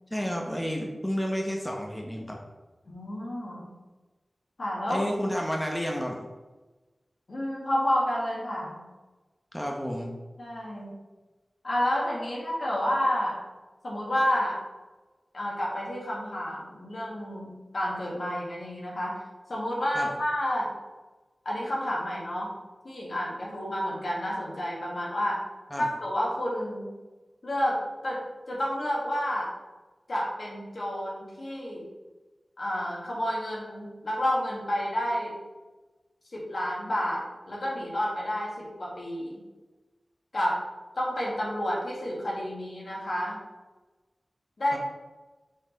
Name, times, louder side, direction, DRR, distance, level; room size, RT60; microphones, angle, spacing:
voice 1, 0.1-2.4 4.9-6.2 9.5-10.1 19.9-20.1 25.7-25.9 44.7-44.8, equal, 10° left, 0 dB, 0.9 m, -31 dB
voice 2, 2.9-3.7 4.6-5.0 7.3-8.8 10.4-10.9 11.6-13.4 13.8-14.6 15.3-19.2 19.5-20.7 21.5-22.5 22.8-25.4 25.8-26.9 27.4-28.2 28.5-29.5 30.1-31.9 32.6-35.4 36.3-39.4 40.3-40.6 41.0-43.4 44.6-44.8, equal, 70° left, -4 dB, 2.0 m, -30 dB
6.2 x 4.7 x 4.0 m, 1.2 s
wide cardioid pair, 60°, 0 cm